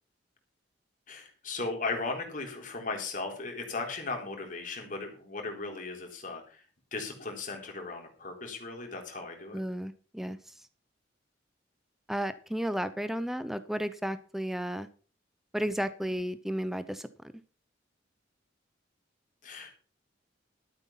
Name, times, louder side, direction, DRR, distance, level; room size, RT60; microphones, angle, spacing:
voice 1, 1.1-6.6 6.9-9.6 19.4-19.7, left 3 dB, 45° left, 2 dB, 3.8 m, -37 dB
voice 2, 9.5-10.4 12.1-14.9 15.5-17.1, equal, ahead, 13 dB, 0.7 m, -33 dB
13.0 x 7.8 x 5.7 m, 0.39 s
head